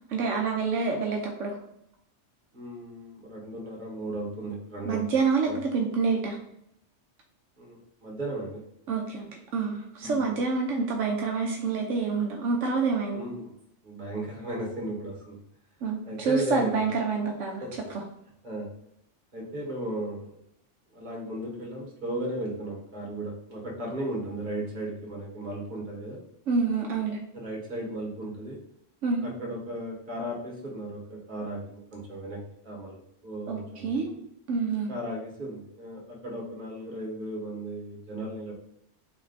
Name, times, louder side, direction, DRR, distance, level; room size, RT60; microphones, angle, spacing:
voice 1, 0.1-1.6 4.8-6.4 8.9-13.2 15.8-17.6 26.5-27.2 29.0-29.2 33.5-34.1 34.5-34.9, right 4 dB, 75° right, 1 dB, 1.0 m, -27 dB
voice 2, 2.5-5.1 5.4-5.6 7.6-8.7 10.0-10.3 13.1-13.5 13.8-15.4 16.0-16.8 17.6-17.8 18.4-18.7 19.3-20.4 20.9-26.2 27.3-28.6 29.2-33.0 33.2-34.2 34.9-38.5, right 1 dB, 40° right, -2 dB, 1.4 m, -36 dB
4.2 x 3.2 x 3.9 m, 0.74 s
omnidirectional pair, 1.3 m